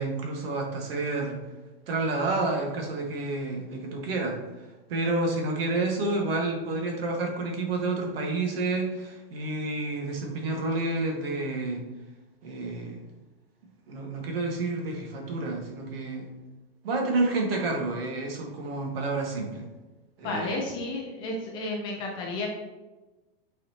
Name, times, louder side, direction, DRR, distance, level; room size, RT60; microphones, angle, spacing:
voice 1, 0.0-1.4 1.9-4.4 4.9-11.8 12.4-13.0 13.9-16.3 16.8-19.6 20.2-20.6, right 2 dB, 75° right, 1 dB, 1.6 m, -29 dB
voice 2, 20.2-22.5, left 2 dB, 15° left, 0 dB, 0.4 m, -32 dB
8.4 x 4.2 x 2.9 m, 1.1 s
supercardioid pair, 170°, 30 cm